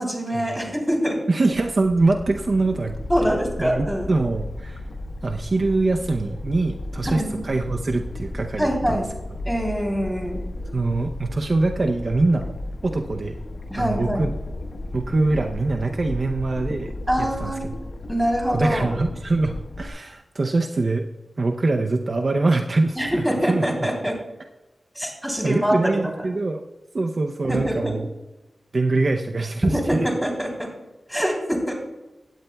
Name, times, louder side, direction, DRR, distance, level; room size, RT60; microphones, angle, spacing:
voice 1, 0.0-1.2 3.1-4.1 7.0-7.5 8.6-9.0 9.4-10.4 13.7-14.3 17.1-17.6 18.1-18.9 22.9-24.1 24.9-25.7 27.5-27.9 29.7-30.7 31.1-31.7, equal, 5° right, 0 dB, 3.3 m, -24 dB
voice 2, 1.3-2.9 3.2-4.8 5.2-9.0 10.7-12.5 12.8-13.4 13.7-14.3 14.9-16.9 17.2-17.8 18.5-21.0 21.4-23.7 25.4-26.6 26.9-28.1 28.7-30.1, right 3 dB, 50° right, 4 dB, 0.6 m, -23 dB
sound 1, 1.5-19.9, left 1 dB, 70° left, 1.2 m, -34 dB
16.5 x 9.5 x 2.3 m, 1.0 s
wide cardioid pair, 85°, 0 cm